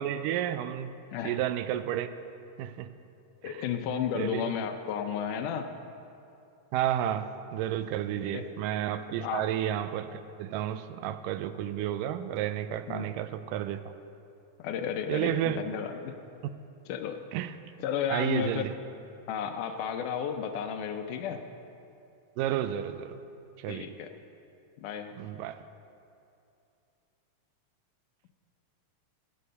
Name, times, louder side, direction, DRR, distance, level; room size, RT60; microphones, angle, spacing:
voice 1, 0.0-0.9 1.2-2.1 2.6-2.9 3.4-3.6 4.2-4.5 6.7-13.8 15.1-15.6 17.3-17.5 18.1-18.7 22.4-23.1 23.6-23.9 25.2-25.6, right 11 dB, 90° right, 11 dB, 2.2 m, -31 dB
voice 2, 3.4-5.7 8.1-8.5 9.2-9.5 12.9-13.1 14.6-16.2 16.9-17.2 17.8-18.7 19.3-21.4 23.7-24.1 24.8-25.1, left 8 dB, 80° left, 7 dB, 2.2 m, -33 dB
17.0 x 6.6 x 6.6 m, 2.6 s
omnidirectional pair, 3.7 m